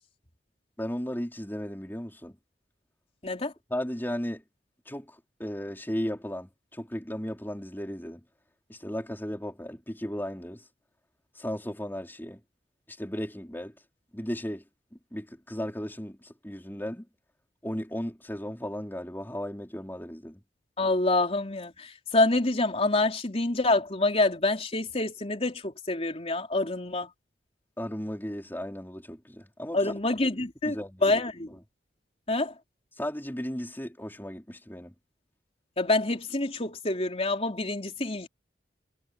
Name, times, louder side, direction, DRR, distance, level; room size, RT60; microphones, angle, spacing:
voice 1, 0.8-2.4 3.7-4.4 4.9-8.2 8.7-10.6 11.4-12.4 12.9-13.7 14.1-14.6 15.1-17.1 17.6-20.4 27.8-30.0 30.6-31.2 31.5-31.6 33.0-34.9, equal, 10° left, 4.4 m, -35 dB
voice 2, 20.8-27.1 29.7-30.8 31.0-31.5 32.3-32.5 35.8-38.3, left 2 dB, 35° left, 3.7 m, -26 dB
head